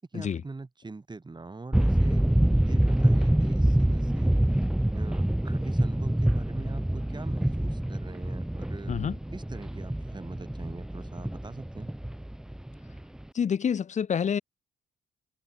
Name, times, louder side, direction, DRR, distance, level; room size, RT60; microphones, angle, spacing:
voice 1, 0.1-2.2 2.6-4.4 4.9-9.0 9.3-11.9, right 3 dB, 20° right, 5.5 m, -43 dB
sound 1, 1.7-13.2, right 1 dB, 5° right, 0.4 m, -26 dB
voice 2, 8.9-9.2 13.3-14.4, left 7 dB, 35° left, 0.6 m, -27 dB
cardioid pair, 90°, 20 cm